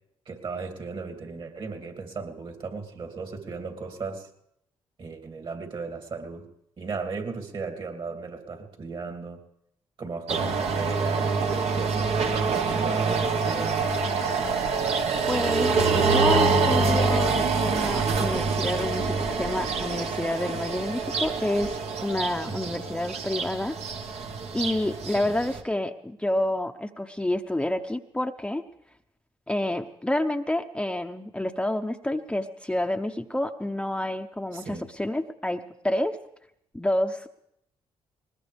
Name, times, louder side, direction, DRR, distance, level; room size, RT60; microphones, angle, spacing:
voice 1, 0.3-4.3 5.0-6.5 6.8-9.4 10.0-14.0 22.4-22.8 25.1-25.3 34.5-34.9, right 4 dB, 50° right, 4 dB, 2.7 m, -36 dB
sound 1, 10.3-25.6, right 4 dB, 70° right, 1.5 m, -26 dB
voice 2, 15.3-23.8 24.5-28.6 29.5-36.2 36.7-37.3, left 1 dB, 10° left, 6 dB, 0.7 m, -29 dB
20.5 x 20.0 x 3.5 m, 0.76 s
supercardioid pair, 65°, 11 cm